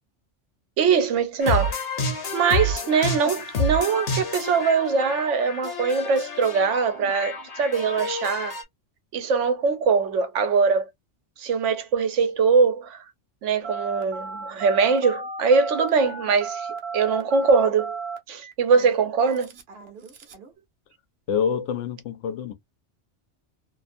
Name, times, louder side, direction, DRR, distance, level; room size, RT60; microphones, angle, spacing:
voice 1, 0.8-1.7 2.3-8.5 9.1-10.9 11.4-13.0 13.4-16.7 16.9-18.0 18.3-19.5, right 5 dB, 85° right, 1.0 m, -22 dB
sound 1, 1.4-8.6, left 1 dB, 60° left, 1.1 m, -29 dB
Telephone, 13.6-20.5, right 4 dB, 60° right, 1.0 m, -35 dB
voice 2, 21.3-22.5, left 7 dB, 85° left, 0.9 m, -26 dB
2.6 x 2.5 x 2.5 m
omnidirectional pair, 1.2 m